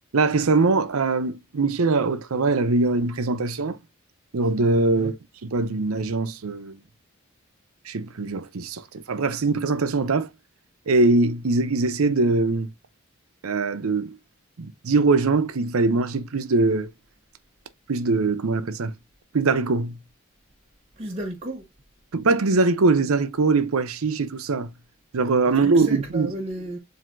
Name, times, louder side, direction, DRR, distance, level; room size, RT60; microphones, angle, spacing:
voice 1, 0.1-3.8 4.3-5.1 5.4-6.8 7.9-10.3 10.9-12.7 13.4-14.2 14.6-16.9 17.9-18.9 19.3-20.0 22.1-24.7 25.1-26.3, right 3 dB, 85° right, 0.6 m, -22 dB
voice 2, 21.0-21.7 25.5-26.8, right 1 dB, 30° right, 0.6 m, -33 dB
7.4 x 2.7 x 2.5 m
head